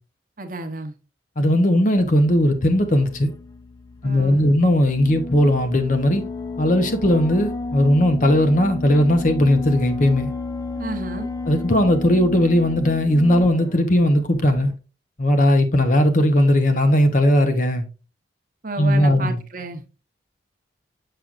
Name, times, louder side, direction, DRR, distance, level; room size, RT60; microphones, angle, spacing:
voice 1, 0.4-0.9 4.0-4.6 10.8-11.3 18.6-19.8, right 2 dB, 45° right, 0.8 m, -32 dB
voice 2, 1.4-3.3 4.0-6.2 6.6-10.3 11.5-14.7 15.2-17.8 18.8-19.4, left 1 dB, 40° left, 0.8 m, -18 dB
sound 1, 2.0-14.8, left 3 dB, 20° left, 0.3 m, -32 dB
6.8 x 6.0 x 2.4 m
head